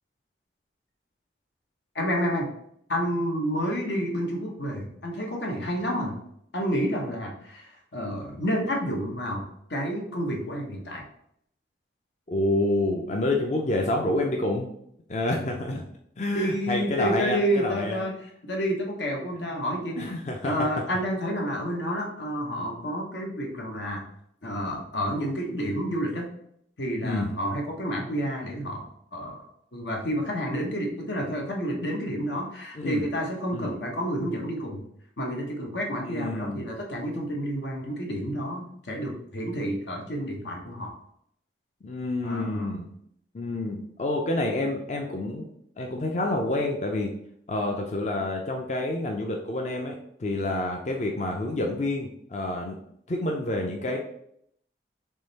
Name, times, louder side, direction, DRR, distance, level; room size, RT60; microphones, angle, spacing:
voice 1, 1.9-2.5 2.9-6.2 6.5-9.4 9.7-11.0 16.3-18.1 18.4-20.1 20.4-24.0 24.4-26.3 26.8-28.9 29.1-29.4 29.7-34.8 35.2-40.9 42.2-42.7, equal, 85° left, 1 dB, 1.1 m, -29 dB
voice 2, 12.3-14.7 15.1-15.8 16.2-18.0 20.0-20.5 27.0-27.3 32.7-33.0 33.5-33.7 36.0-36.7 41.8-42.9 43.3-45.5 45.8-47.1 47.5-52.8 53.1-54.0, left 1 dB, 40° left, 2 dB, 0.4 m, -28 dB
3.7 x 3.2 x 4.0 m, 0.71 s
head